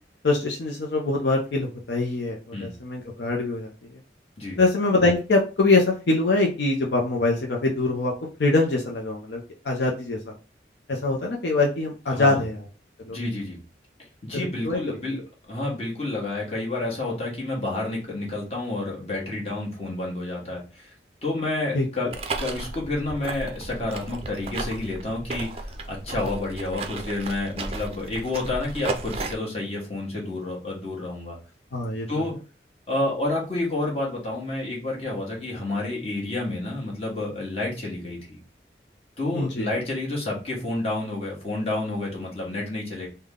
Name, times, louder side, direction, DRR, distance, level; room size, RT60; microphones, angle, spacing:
voice 1, 0.2-3.7 4.6-8.1 8.4-10.3 10.9-12.6 13.0-13.2 14.3-14.8 21.7-21.9 31.7-32.1 39.3-39.7, left 2 dB, 70° left, -1 dB, 0.6 m, -23 dB
voice 2, 12.1-12.4 13.1-13.6 14.2-20.9 21.2-22.1 22.4-31.4 32.1-32.3 32.9-38.4 39.2-43.1, left 2 dB, 35° left, -4 dB, 1.3 m, -29 dB
sound 1, 22.1-29.3, right 3 dB, 35° right, 0.4 m, -34 dB
3.6 x 2.2 x 3.6 m, 0.33 s
head